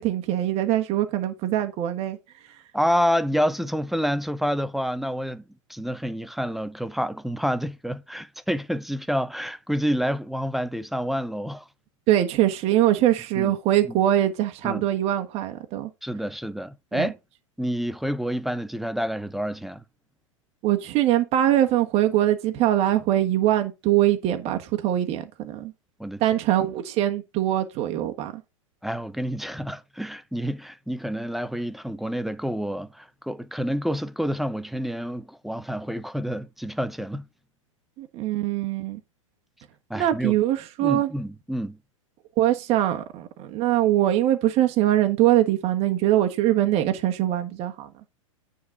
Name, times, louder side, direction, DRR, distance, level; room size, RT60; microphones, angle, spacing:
voice 1, 0.0-2.2 12.1-15.9 16.9-17.1 20.6-25.7 26.2-28.4 38.0-39.0 39.9-41.1 42.4-47.9, right 13 dB, 35° right, 1.3 m, -22 dB
voice 2, 2.7-5.4 5.7-11.7 13.4-13.5 13.9-14.0 14.6-14.8 16.0-17.2 17.6-19.8 26.0-26.2 28.8-37.2 39.9-40.4 40.8-41.8, equal, ahead, 0.6 m, -28 dB
9.4 x 3.9 x 5.9 m
hypercardioid pair, 105°, 17 cm